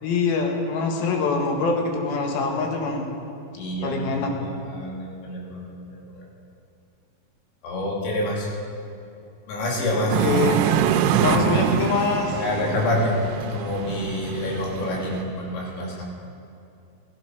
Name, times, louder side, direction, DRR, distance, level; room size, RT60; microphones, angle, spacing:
voice 1, 0.0-3.1 3.8-4.3 9.9-10.6 11.2-12.4, left 4 dB, 65° left, 2 dB, 3.3 m, -24 dB
voice 2, 3.5-4.1 4.4-6.2 7.6-8.5 9.5-10.2 11.0-11.6 12.3-16.0, left 1 dB, 85° left, -2 dB, 4.9 m, -27 dB
sound 1, 10.1-15.2, right 9 dB, 85° right, 2.9 m, -25 dB
15.0 x 14.5 x 6.0 m, 2.6 s
omnidirectional pair, 5.1 m